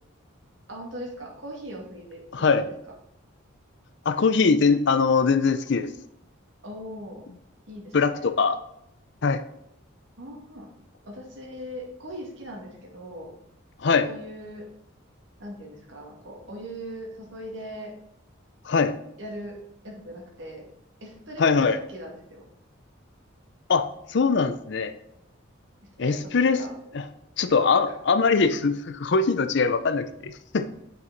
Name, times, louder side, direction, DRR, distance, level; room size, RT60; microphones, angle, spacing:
voice 1, 0.7-2.7 6.6-7.2 7.7-8.3 10.2-10.7 11.0-13.3 14.0-14.7 15.4-17.9 19.2-19.6 19.8-20.6 21.0-22.4 26.0-26.7, equal, 65° right, -1 dB, 2.3 m, -40 dB
voice 2, 2.3-2.7 4.1-5.9 7.9-8.6 9.2-9.4 13.8-14.1 18.6-18.9 21.4-21.8 23.7-24.9 26.0-26.6 26.9-27.0 27.4-30.7, left 4 dB, 60° left, 10 dB, 0.5 m, -22 dB
7.6 x 5.8 x 4.0 m, 0.78 s
head